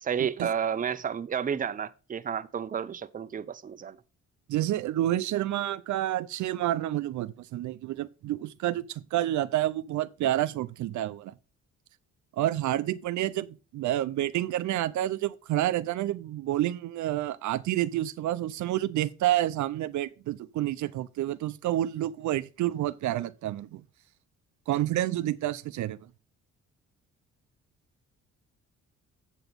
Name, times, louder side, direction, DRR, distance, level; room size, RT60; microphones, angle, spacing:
voice 1, 0.0-4.0, right 7 dB, 30° right, 0.6 m, -31 dB
voice 2, 4.5-11.3 12.4-23.8 24.7-26.0, right 13 dB, 70° right, 0.5 m, -29 dB
8.2 x 5.9 x 5.2 m
cardioid pair, 90°, 30 cm